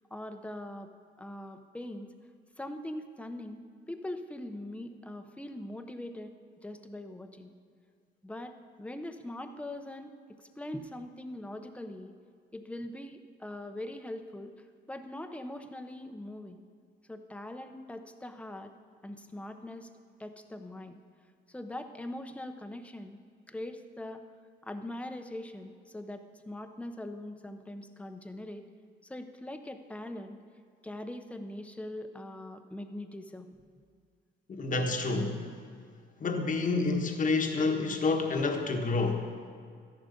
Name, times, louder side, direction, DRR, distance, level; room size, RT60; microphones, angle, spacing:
voice 1, 0.1-0.9 1.2-2.1 2.6-6.3 6.6-7.5 8.2-10.1 10.6-12.1 12.5-14.5 14.9-16.6 17.1-18.7 19.0-19.9 20.2-21.0 21.5-23.2 23.5-24.2 24.6-28.6 29.0-30.4 30.8-33.5, left 1 dB, 5° left, 7 dB, 0.9 m, -42 dB
voice 2, 34.6-35.5 36.2-39.3, left 3 dB, 40° left, 3 dB, 1.4 m, -28 dB
13.0 x 10.5 x 5.3 m, 2.1 s
cardioid pair, 90°, 20 cm